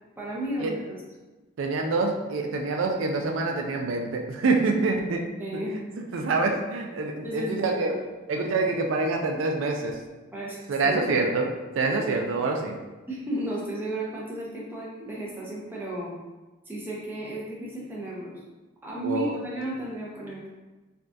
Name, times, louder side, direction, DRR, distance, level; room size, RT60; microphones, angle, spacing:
voice 1, 0.2-1.0 5.4-5.7 7.2-8.0 10.3-11.0 13.1-16.1 16.7-18.4 18.8-20.5, right 1 dB, 10° right, -5 dB, 0.5 m, -33 dB
voice 2, 1.6-5.8 6.1-7.9 8.3-10.0 10.7-12.8 19.0-19.3, right 3 dB, 80° right, 3 dB, 0.4 m, -26 dB
3.5 x 2.3 x 2.5 m, 1.2 s
head